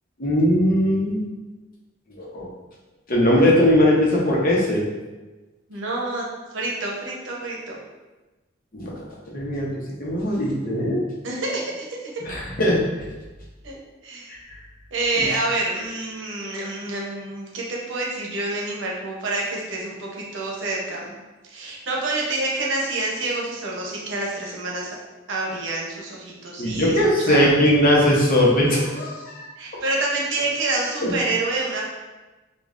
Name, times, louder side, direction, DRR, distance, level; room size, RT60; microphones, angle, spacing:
voice 1, 0.2-1.2 2.2-2.5 3.1-4.8 8.7-8.9 9.3-9.7 10.0-11.0 12.2-13.1 14.5-14.6 15.2-15.3 26.6-29.5 31.0-31.2, equal, 50° left, -3 dB, 0.8 m, -19 dB
voice 2, 5.7-6.3 6.5-7.8 11.2-11.9 13.6-13.8 14.0-14.3 14.9-21.2 21.5-25.0 25.3-26.9 27.3-27.5 29.6-31.8, right 2 dB, 80° right, -2 dB, 0.8 m, -27 dB
5.0 x 2.4 x 2.5 m, 1.1 s
head